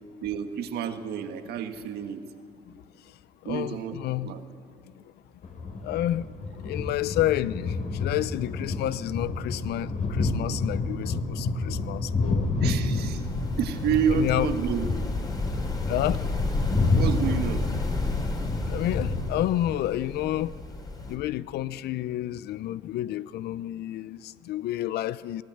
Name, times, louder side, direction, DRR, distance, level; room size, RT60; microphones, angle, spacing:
voice 1, 0.2-2.2 3.4-4.4 12.6-13.2 13.6-14.9 16.9-17.7, right 8 dB, 70° right, 7 dB, 1.6 m, -29 dB
voice 2, 2.7-3.2 3.4-4.4 4.9-5.0 5.8-12.5 14.1-14.5 15.9-16.3 18.6-20.5 21.1-25.4, left 13 dB, 75° left, 17 dB, 0.6 m, -30 dB
sound 1, 5.4-19.7, left 3 dB, 50° left, 3.1 m, -30 dB
sound 2, 13.0-21.2, left 2 dB, 25° left, 3.2 m, -31 dB
23.0 x 17.0 x 7.9 m, 2.3 s
cardioid pair, 110°, 17 cm